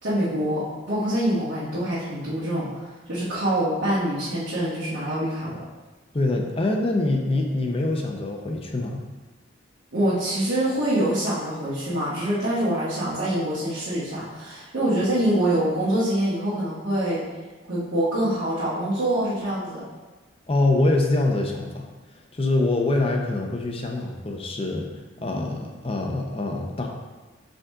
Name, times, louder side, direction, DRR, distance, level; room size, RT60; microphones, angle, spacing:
voice 1, 0.0-5.6 9.9-17.2 17.7-19.8, right 1 dB, 65° right, -13 dB, 1.8 m, -25 dB
voice 2, 6.1-9.0 20.5-21.9 22.3-24.9 25.2-26.9, left 2 dB, 30° left, 1 dB, 0.6 m, -24 dB
5.2 x 5.0 x 3.7 m, 1.3 s
head